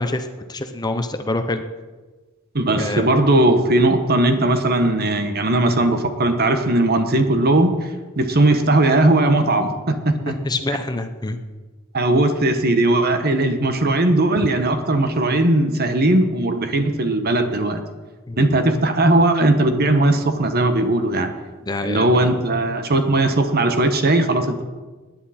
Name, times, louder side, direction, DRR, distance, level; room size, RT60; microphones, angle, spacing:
voice 1, 0.0-1.6 2.8-3.1 10.3-11.4 18.3-18.5 21.7-22.3, left 2 dB, 20° left, 8 dB, 0.7 m, -26 dB
voice 2, 2.5-7.7 8.2-10.3 11.9-17.8 18.4-21.3 21.8-24.6, right 2 dB, 50° right, 8 dB, 1.2 m, -18 dB
19.0 x 10.0 x 4.3 m, 1.3 s
head